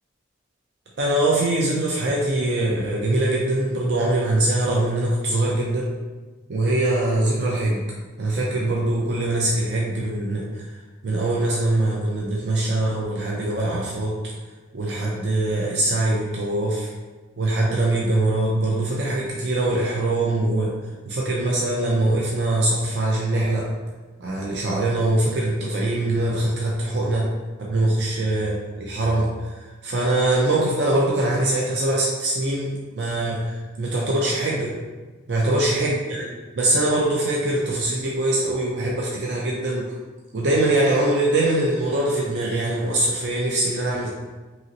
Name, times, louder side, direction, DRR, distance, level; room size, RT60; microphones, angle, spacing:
voice 1, 1.0-5.9 6.5-7.8 8.2-10.6 11.0-14.2 14.7-16.9 17.4-20.7 21.1-23.7 24.2-27.3 27.6-34.7 35.3-39.8 40.3-44.1, right 2 dB, 65° right, -4 dB, 0.4 m, -23 dB
2.8 x 2.7 x 2.7 m, 1.3 s
head